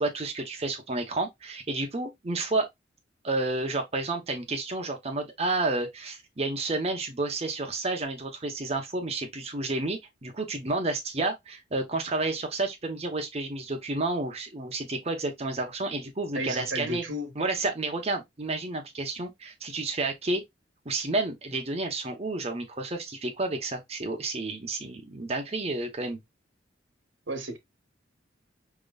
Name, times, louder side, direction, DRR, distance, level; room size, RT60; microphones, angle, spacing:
voice 1, 0.0-2.7 3.2-17.0 17.3-20.4 20.8-26.2, right 2 dB, 35° right, 0.9 m, -30 dB
voice 2, 16.3-17.3 27.3-27.6, equal, 90° right, 1.1 m, -33 dB
5.3 x 2.9 x 2.3 m
head